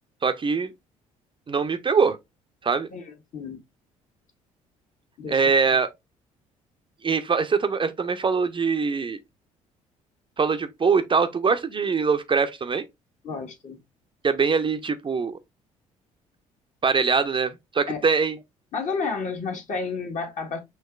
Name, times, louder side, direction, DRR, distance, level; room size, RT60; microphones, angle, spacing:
voice 1, 0.2-0.7 1.5-2.2 2.6-2.9 5.3-5.9 7.0-9.2 10.4-12.8 14.2-15.4 16.8-18.4, right 5 dB, 30° right, 0.6 m, -23 dB
voice 2, 2.9-3.6 5.2-5.4 13.2-13.8 17.9-18.0 18.7-20.6, left 4 dB, 50° left, 1.5 m, -31 dB
5.5 x 2.9 x 2.3 m
hypercardioid pair, 55°, 17 cm